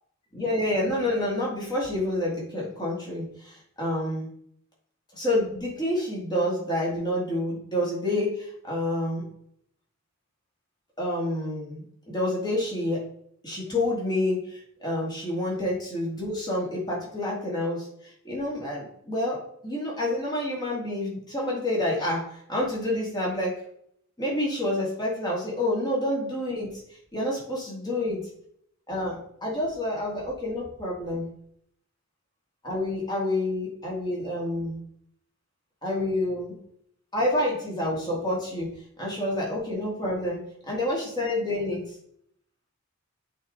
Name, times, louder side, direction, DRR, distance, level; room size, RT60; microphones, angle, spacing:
voice 1, 0.3-4.3 5.1-9.2 11.0-13.0 13.4-23.5 24.2-26.8 27.1-28.2 28.9-31.3 32.6-34.8 35.8-36.6 37.1-38.7 39.0-41.8, left 1 dB, 20° left, -4 dB, 2.2 m, -28 dB
8.3 x 3.8 x 3.8 m, 0.68 s
head